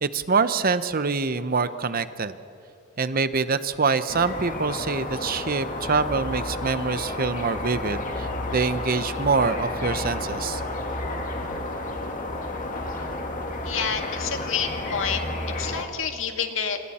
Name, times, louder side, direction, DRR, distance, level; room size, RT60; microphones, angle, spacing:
voice 1, 0.0-2.3 3.0-10.6, right 4 dB, 45° right, 13 dB, 0.8 m, -25 dB
sound 1, 4.1-15.8, left 2 dB, 40° left, 2.1 m, -31 dB
voice 2, 13.6-15.3 15.6-16.8, left 7 dB, 80° left, 5 dB, 1.9 m, -28 dB
28.0 x 27.0 x 4.3 m, 2.7 s
head